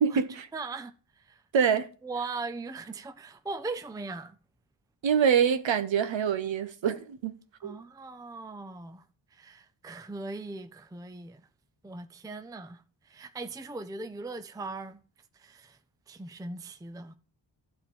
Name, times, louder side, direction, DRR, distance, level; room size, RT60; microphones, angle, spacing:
voice 1, 0.0-0.5 1.5-1.9 5.0-7.3 7.6-7.8, right 7 dB, 80° right, 1.0 m, -25 dB
voice 2, 0.5-1.4 2.0-4.4 7.6-9.0 9.3-11.5 11.8-15.0 15.3-15.8 16.1-17.1, right 3 dB, 10° right, 0.5 m, -39 dB
12.5 x 4.3 x 5.3 m
wide cardioid pair, 120°, 45 cm